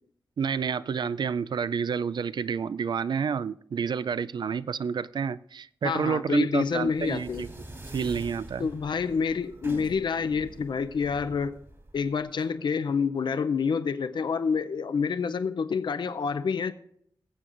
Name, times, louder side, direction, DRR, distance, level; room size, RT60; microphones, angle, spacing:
voice 1, 0.4-7.5 7.9-8.7, right 6 dB, 65° right, 0.3 m, -29 dB
voice 2, 5.8-7.4 8.6-11.6 11.9-16.7, left 5 dB, 75° left, 0.5 m, -28 dB
sound 1, 6.7-12.5, right 1 dB, 35° right, 2.6 m, -45 dB
20.0 x 7.7 x 2.5 m
cardioid pair, 65°, 8 cm